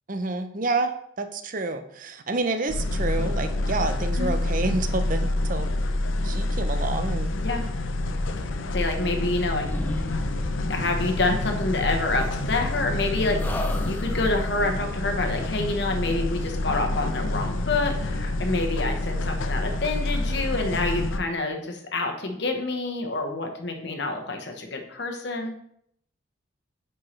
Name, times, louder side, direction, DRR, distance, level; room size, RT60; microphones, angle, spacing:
voice 1, 0.1-0.9 1.2-5.7 6.2-7.3, right 3 dB, 40° right, 8 dB, 0.6 m, -28 dB
sound 1, 2.7-21.2, left 2 dB, 80° left, 0.6 m, -27 dB
voice 2, 7.3-7.7 8.7-9.7 10.7-25.6, left 2 dB, 60° left, 3 dB, 1.1 m, -27 dB
sound 2, 8.5-9.4 9.6-10.8 12.2-13.0 13.4-14.6, left 1 dB, 10° left, 0.5 m, -35 dB
9.9 x 4.6 x 3.2 m, 0.70 s
head